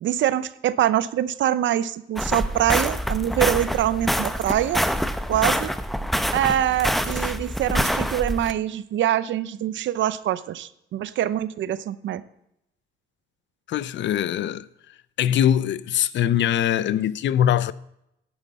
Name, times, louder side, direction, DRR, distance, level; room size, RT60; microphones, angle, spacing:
voice 1, 0.0-4.8 5.3-5.7 6.3-12.2, right 12 dB, 70° right, 0.6 m, -24 dB
sound 1, 2.2-8.5, equal, ahead, 0.7 m, -26 dB
voice 2, 13.7-14.7 15.2-17.7, left 10 dB, 65° left, 0.5 m, -22 dB
10.5 x 9.1 x 4.1 m
cardioid pair, 90°, 20 cm